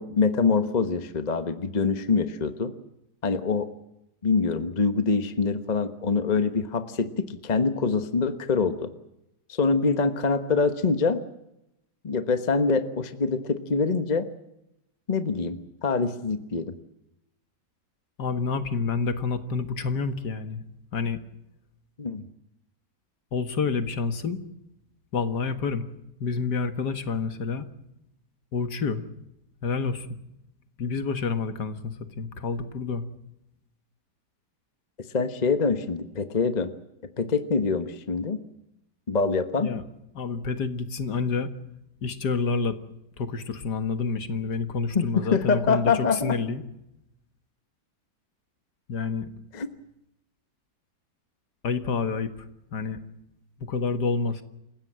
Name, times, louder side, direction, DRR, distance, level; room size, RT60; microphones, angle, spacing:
voice 1, 0.0-2.7 3.2-3.7 4.2-8.9 9.5-11.2 12.0-14.3 15.1-16.7 22.0-22.2 35.1-36.7 37.2-38.4 39.1-39.7 44.9-46.4 49.5-49.7, left 4 dB, 30° left, 10 dB, 1.2 m, -25 dB
voice 2, 18.2-20.6 20.9-21.2 23.3-24.4 25.1-25.9 26.2-27.7 28.5-29.1 29.6-30.2 30.8-33.0 39.6-39.8 40.2-41.5 42.0-42.7 43.2-46.6 48.9-49.3 51.6-53.0 53.6-54.4, left 4 dB, 70° left, 10 dB, 2.2 m, -28 dB
28.5 x 16.0 x 7.5 m, 0.86 s
omnidirectional pair, 1.8 m